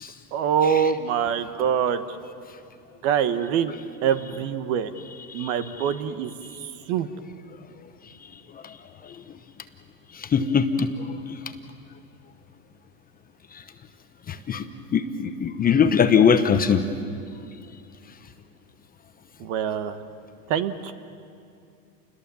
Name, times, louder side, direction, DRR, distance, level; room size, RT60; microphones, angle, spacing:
voice 1, 0.3-2.0 3.0-4.9 5.3-6.3 6.6-7.1 19.4-20.0 20.5-20.9, right 8 dB, 55° right, 11 dB, 1.5 m, -24 dB
voice 2, 10.1-10.9 11.3-11.4 13.5-13.6 14.3-14.7 14.9-16.8, left 6 dB, 20° left, 8 dB, 0.9 m, -21 dB
29.0 x 21.5 x 7.1 m, 2.5 s
hypercardioid pair, 125°, 48 cm